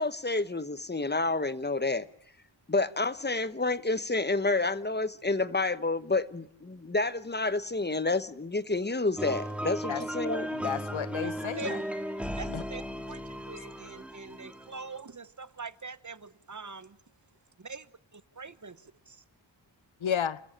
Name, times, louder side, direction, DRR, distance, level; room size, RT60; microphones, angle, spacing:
voice 1, 0.0-2.1 2.7-10.5, left 3 dB, 20° left, 1.1 m, -29 dB
sound 1, 9.2-15.0, equal, 5° right, 2.0 m, -36 dB
voice 2, 10.5-11.8 12.5-12.6 20.0-20.4, left 8 dB, 85° left, 0.9 m, -32 dB
voice 3, 11.2-11.8 12.4-12.8 13.1-17.0 17.6-17.9 18.1-18.8 19.1-19.2, right 4 dB, 40° right, 1.0 m, -43 dB
29.5 x 14.0 x 8.9 m
wide cardioid pair, 75°, 46 cm